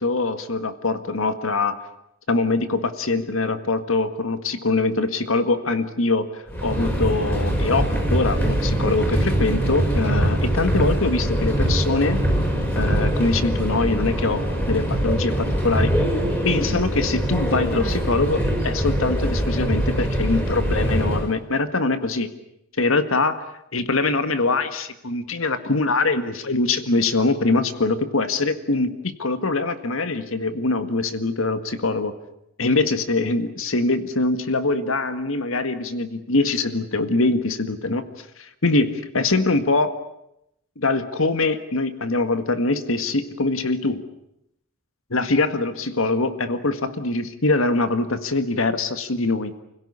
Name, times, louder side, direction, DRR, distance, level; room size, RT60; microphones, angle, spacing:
voice 1, 0.0-1.8 2.3-12.2 12.8-15.9 16.5-22.3 22.8-23.3 23.7-32.1 32.6-38.0 38.4-39.9 40.8-44.0 45.1-49.5, left 3 dB, 75° left, 10 dB, 1.8 m, -23 dB
Subway metro underground, 6.5-21.3, right 1 dB, 10° left, 5.6 m, -23 dB
30.0 x 16.5 x 9.9 m, 0.81 s
head